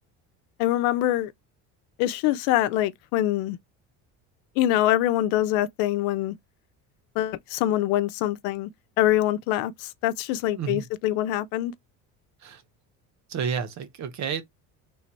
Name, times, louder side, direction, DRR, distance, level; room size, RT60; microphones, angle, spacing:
voice 1, 0.6-1.3 2.0-3.6 4.6-6.4 7.2-8.7 9.0-11.7, left 13 dB, 80° left, 0.7 m, -24 dB
voice 2, 10.5-10.8 12.4-12.6 13.3-14.4, right 7 dB, 50° right, 1.1 m, -30 dB
3.4 x 2.7 x 4.4 m
supercardioid pair, 100°, 35 cm